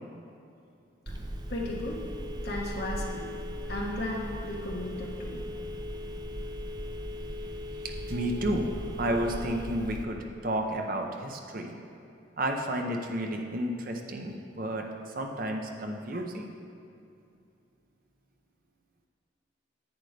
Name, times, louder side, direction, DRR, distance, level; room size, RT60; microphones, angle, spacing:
Telephone, 1.1-10.0, equal, 20° right, 0.4 m, -37 dB
voice 1, 1.5-2.0 2.4-3.3 3.7-5.4, left 1 dB, 55° left, -3 dB, 1.6 m, -35 dB
voice 2, 7.8-11.8 12.4-16.5, right 1 dB, 50° right, 2 dB, 0.8 m, -32 dB
10.5 x 8.9 x 3.4 m, 2.6 s
head